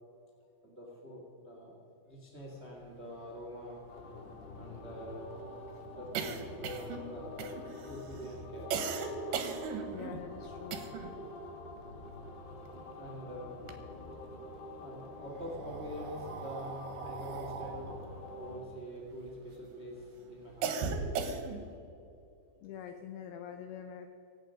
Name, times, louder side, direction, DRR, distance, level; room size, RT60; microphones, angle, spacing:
voice 1, 0.6-1.8 2.1-3.8 4.5-5.3 5.8-9.0 10.8-11.0 12.5-13.8 14.8-21.3, equal, 30° right, -2 dB, 1.2 m, -45 dB
sound 1, 3.0-3.1 3.4-3.5 3.8-11.2 11.5-13.1 13.4-14.4 15.1-19.6 20.0-21.8, right 5 dB, 65° right, 2.8 m, -39 dB
sound 2, 3.9-18.6, left 2 dB, 65° left, 3.7 m, -46 dB
voice 2, 9.9-10.9 22.6-24.1, left 8 dB, 80° left, 7 dB, 2.2 m, -45 dB
25.0 x 8.7 x 5.2 m, 2.7 s
omnidirectional pair, 5.2 m